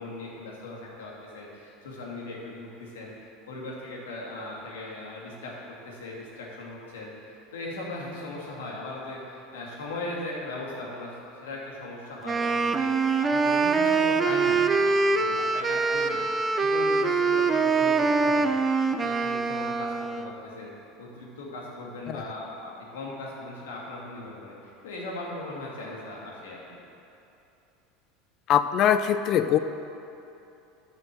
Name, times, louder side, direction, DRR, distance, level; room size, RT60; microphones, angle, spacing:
voice 1, 0.0-3.1 3.5-5.5 5.9-12.9 13.2-16.2 16.6-18.6 19.0-20.7 21.0-24.5 24.8-26.8, left 2 dB, 85° left, -3 dB, 2.4 m, -38 dB
Wind instrument woodwind instrument, 12.2-20.3, right 4 dB, 25° right, 0.6 m, -24 dB
voice 2, 28.5-29.6, left 9 dB, 50° left, 11 dB, 0.6 m, -22 dB
9.1 x 6.1 x 7.6 m, 2.8 s
hypercardioid pair, 100°, 0 cm